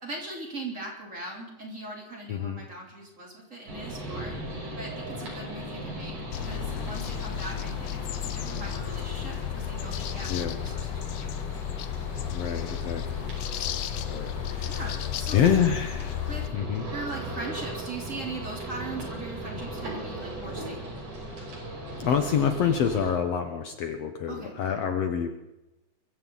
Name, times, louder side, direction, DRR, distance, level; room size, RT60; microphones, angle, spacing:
voice 1, 0.0-4.4 4.8-6.1 6.4-11.3 14.7-15.4 16.2-16.5 16.9-21.0 24.3-24.8, right 2 dB, 25° right, -1 dB, 4.0 m, -40 dB
voice 2, 2.3-2.6 10.3-10.6 12.3-13.3 14.1-14.8 15.3-16.2 16.5-16.9 22.0-25.3, left 8 dB, 65° left, 7 dB, 2.0 m, -27 dB
sound 1, 3.7-23.1, right 1 dB, 80° right, 7.2 m, -38 dB
sound 2, 6.3-16.5, left 12 dB, 90° left, 1.2 m, -33 dB
23.0 x 15.0 x 4.0 m, 0.98 s
omnidirectional pair, 3.4 m